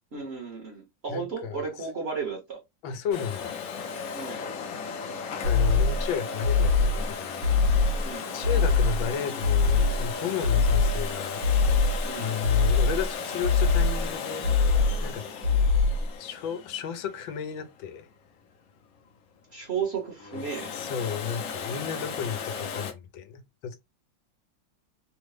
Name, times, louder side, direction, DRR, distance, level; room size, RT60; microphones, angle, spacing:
voice 1, 0.1-2.6 4.1-4.4 8.0-8.5 12.1-12.4 19.5-20.7, right 5 dB, 45° right, 0.9 m, -34 dB
voice 2, 1.1-1.6 2.8-3.5 5.4-7.7 8.0-11.8 12.2-14.5 15.0-15.2 16.2-18.1 20.7-23.8, left 8 dB, 85° left, 1.4 m, -33 dB
Domestic sounds home sounds, 3.1-17.9 20.2-22.9, left 5 dB, 65° left, 0.9 m, -36 dB
sound 1, 5.4-6.1 6.4-7.1 7.4-8.1 8.4-9.1 9.4-10.1 10.4-11.1 11.4-12.1 12.4-13.1 13.4-14.1 14.4-15.1 15.4-16.1, left 4 dB, 65° right, 1.7 m, -22 dB
3.7 x 2.0 x 3.1 m
omnidirectional pair, 2.1 m